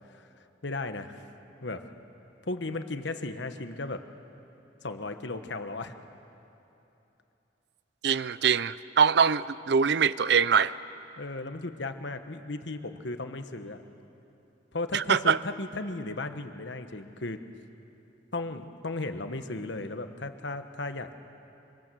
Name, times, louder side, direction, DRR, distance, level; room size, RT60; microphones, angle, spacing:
voice 1, 0.6-1.2 1.6-1.9 2.4-4.0 4.8-5.9 11.2-13.8 14.7-17.4 18.3-21.2, left 2 dB, 65° left, 8 dB, 1.3 m, -35 dB
voice 2, 8.0-10.7 14.9-15.4, right 6 dB, 60° right, 17 dB, 0.5 m, -23 dB
25.5 x 25.0 x 7.7 m, 3.0 s
head